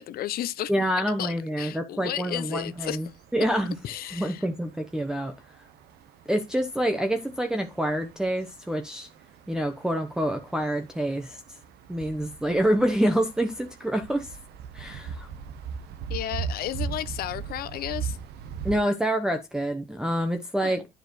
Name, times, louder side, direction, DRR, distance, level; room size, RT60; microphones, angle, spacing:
voice 1, 0.0-0.7 1.2-3.0 3.8-4.5 16.1-18.2 20.6-20.8, left 12 dB, 65° left, 0.6 m, -33 dB
voice 2, 0.7-3.1 3.3-3.8 4.1-5.3 6.3-9.1 9.5-11.4 11.9-14.4 14.7-15.3 18.6-20.9, right 1 dB, 5° right, 0.9 m, -27 dB
sound 1, 2.6-18.8, right 7 dB, 75° right, 1.0 m, -40 dB
10.5 x 4.8 x 3.1 m
cardioid pair, 110°, 17 cm